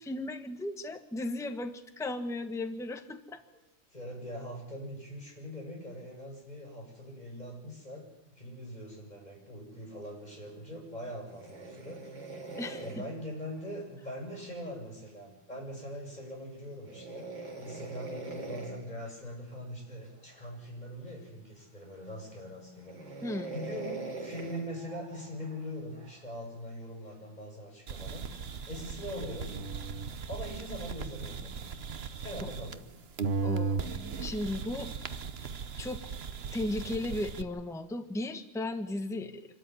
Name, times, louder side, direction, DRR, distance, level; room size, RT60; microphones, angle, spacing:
voice 1, 0.0-3.4 12.6-13.0 23.2-23.5 33.4-34.9 35.8-36.0 36.5-39.6, left 1 dB, ahead, 7 dB, 1.2 m, -36 dB
voice 2, 3.9-8.1 8.3-12.0 12.8-23.0 23.5-28.3 28.7-29.6 30.3-31.7 32.2-32.9 35.0-35.1, equal, 20° left, 0 dB, 7.6 m, -42 dB
sound 1, 11.2-14.5 16.8-18.9 20.0-20.5 21.1-21.2 21.8-22.3 22.8-26.3 27.1-27.4, right 3 dB, 75° right, 4.4 m, -43 dB
sound 2, 27.9-32.9 33.2-37.4, right 5 dB, 45° right, 0.9 m, -37 dB
25.5 x 13.5 x 9.8 m, 0.87 s
omnidirectional pair, 2.0 m